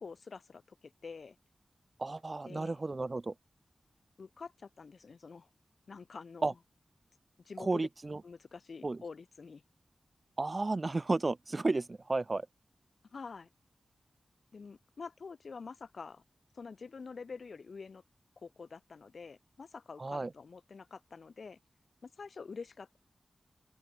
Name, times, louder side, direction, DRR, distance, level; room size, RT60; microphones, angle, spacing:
voice 1, 0.0-1.4 2.5-2.8 4.2-5.5 5.9-6.6 7.4-7.9 8.2-9.6 13.1-13.5 14.5-16.2 16.5-18.0 18.4-21.6 22.0-23.0, left 5 dB, 65° left, 2.3 m, -47 dB
voice 2, 2.0-3.3 6.4-6.5 7.6-8.2 8.8-9.0 10.4-12.5 20.0-20.3, right 3 dB, 35° right, 0.9 m, -33 dB
open air
wide cardioid pair, 110°, 0 cm